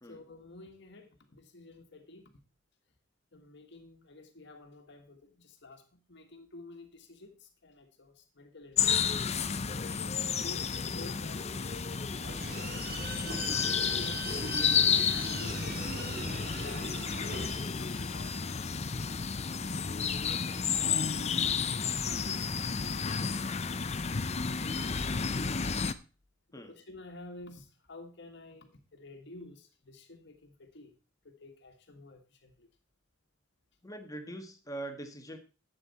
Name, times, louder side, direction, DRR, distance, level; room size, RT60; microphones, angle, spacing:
voice 1, 0.0-2.3 3.3-9.0 9.6-14.3 14.9-16.2 16.6-17.5 17.8-19.0 19.7-25.5 26.5-30.9 31.2-32.7, left 2 dB, 60° left, 5 dB, 1.6 m, -51 dB
sound 1, 8.8-25.9, left 6 dB, 35° left, 0.6 m, -31 dB
sound 2, 12.2-17.5, right 3 dB, 50° right, 2.3 m, -40 dB
sound 3, 17.5-19.2, left 2 dB, 5° right, 4.4 m, -52 dB
voice 2, 33.8-35.4, right 1 dB, 20° left, 6 dB, 1.4 m, -42 dB
11.5 x 8.1 x 4.2 m, 0.33 s
head